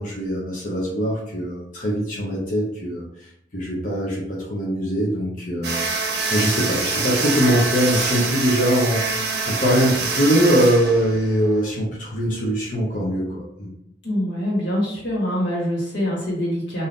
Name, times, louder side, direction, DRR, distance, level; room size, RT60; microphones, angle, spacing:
voice 1, 0.0-5.8 6.3-13.7, equal, 45° left, -6 dB, 0.7 m, -22 dB
sound 1, 5.6-11.6, right 4 dB, 60° right, 0.6 m, -25 dB
voice 2, 14.0-16.9, equal, 80° left, -5 dB, 1.5 m, -24 dB
2.6 x 2.5 x 3.4 m, 0.76 s
head